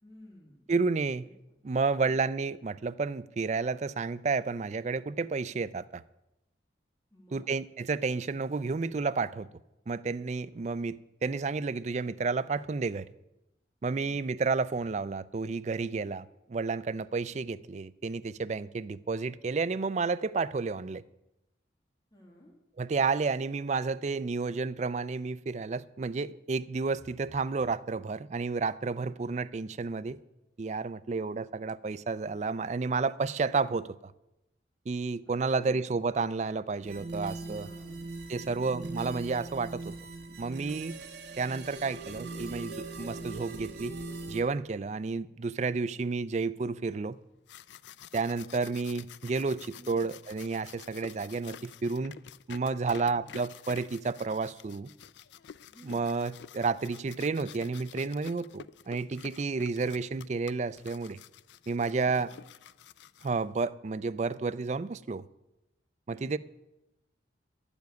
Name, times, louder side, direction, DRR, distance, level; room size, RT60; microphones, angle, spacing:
voice 1, 0.0-0.6 7.1-7.5 14.0-14.2 22.1-22.5 35.2-36.0 37.2-38.0 38.4-38.9 49.8-50.1 52.7-53.4 55.7-56.0 66.1-66.3, equal, 20° left, 1.8 m, -54 dB
voice 2, 0.7-1.3 1.6-6.0 7.3-9.5 9.9-13.1 13.8-21.0 22.8-30.2 30.6-34.1 34.9-37.7 38.3-39.9 40.4-41.0 41.4-43.9 44.3-47.2 48.1-52.1 52.5-54.9 55.8-61.2 61.7-62.3 63.2-65.2 66.1-66.4, right 4 dB, 35° right, 0.4 m, -31 dB
sound 1, 36.8-44.4, right 3 dB, 60° right, 1.4 m, -41 dB
sound 2, 47.2-63.7, left 8 dB, 70° left, 0.4 m, -50 dB
11.5 x 7.1 x 9.4 m
head